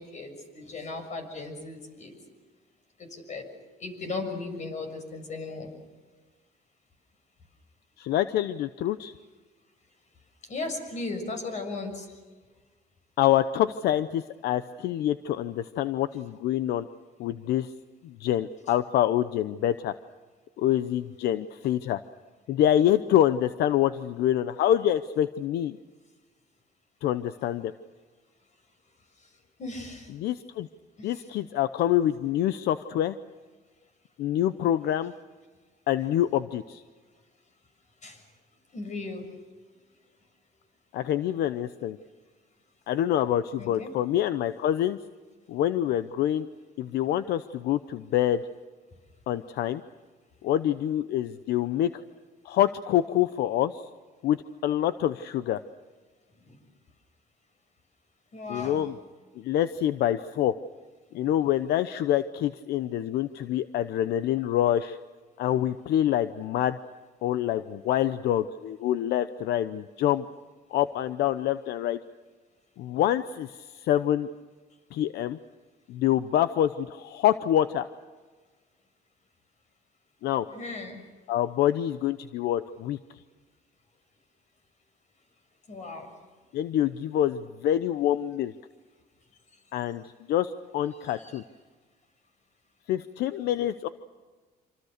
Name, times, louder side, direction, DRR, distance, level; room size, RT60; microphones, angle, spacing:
voice 1, 0.0-2.2 3.0-3.5 3.8-5.7 10.5-12.1 29.6-30.1 31.0-31.2 38.0-38.2 38.7-39.4 43.6-43.9 56.4-56.6 58.3-58.9 80.5-81.0 85.7-86.1 91.0-91.4, left 3 dB, 45° left, 6 dB, 6.8 m, -37 dB
voice 2, 8.0-9.1 13.2-16.9 17.2-17.7 18.0-19.9 20.6-22.0 22.5-25.8 27.0-27.7 30.1-30.7 31.0-33.2 34.2-35.1 35.9-36.8 40.9-42.0 42.9-45.0 45.5-46.5 46.8-48.4 49.3-49.8 50.4-51.9 52.4-53.8 54.2-55.6 58.5-58.9 59.4-60.6 61.1-65.0 65.4-66.8 67.2-70.3 70.7-72.0 72.8-74.3 74.9-75.4 75.9-77.9 80.2-80.5 81.3-83.0 86.5-88.5 89.7-90.0 90.3-91.4 92.9-93.9, left 11 dB, 75° left, 12 dB, 0.8 m, -26 dB
27.0 x 25.5 x 6.7 m, 1.4 s
cardioid pair, 110°, 17 cm